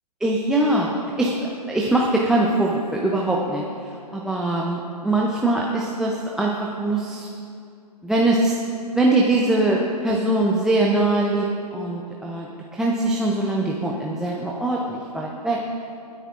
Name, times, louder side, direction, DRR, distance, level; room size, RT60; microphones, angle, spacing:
voice 1, 0.2-0.9 1.2-7.3 8.0-8.6 8.9-11.5 11.7-12.5 12.7-15.6, right 2 dB, ahead, -3 dB, 0.6 m, -22 dB
24.0 x 9.9 x 2.5 m, 2.4 s
figure-of-eight pair, 130°, 21 cm